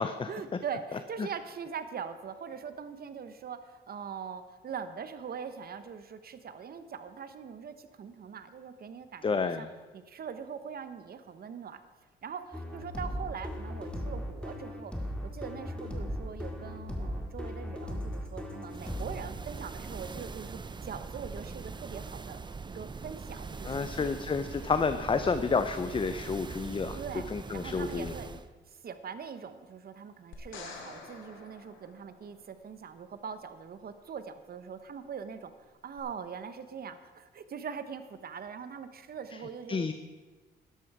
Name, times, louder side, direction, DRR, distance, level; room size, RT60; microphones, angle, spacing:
voice 1, 0.3-9.7 9.9-11.8 12.2-14.9 15.2-22.4 22.7-24.1 26.9-28.3 28.7-39.9, right 6 dB, 50° right, 11 dB, 1.0 m, -42 dB
voice 2, 9.2-9.7 23.6-27.0 27.3-28.1 39.7-39.9, left 5 dB, 25° left, 10 dB, 0.6 m, -30 dB
sound 1, 12.5-19.1, equal, 5° left, 2.1 m, -37 dB
sound 2, 18.7-28.5, right 4 dB, 25° right, 0.6 m, -42 dB
sound 3, 30.3-32.6 36.0-36.1, left 4 dB, 85° left, 2.1 m, -48 dB
12.5 x 11.5 x 4.8 m, 1.3 s
cardioid pair, 90°, 20 cm